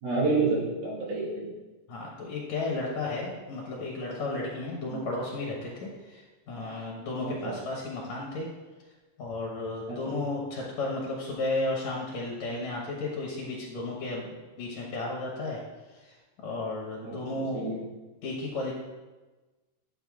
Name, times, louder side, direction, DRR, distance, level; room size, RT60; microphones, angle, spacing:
voice 1, 0.0-1.5 4.9-5.0 7.2-7.6 9.9-10.0 17.0-17.8, right 3 dB, 90° right, -8 dB, 4.1 m, -29 dB
voice 2, 1.9-8.5 9.2-15.6 16.4-17.6 18.2-18.7, left 2 dB, 65° left, -2 dB, 2.0 m, -33 dB
10.5 x 6.7 x 2.4 m, 1.2 s
omnidirectional pair, 4.0 m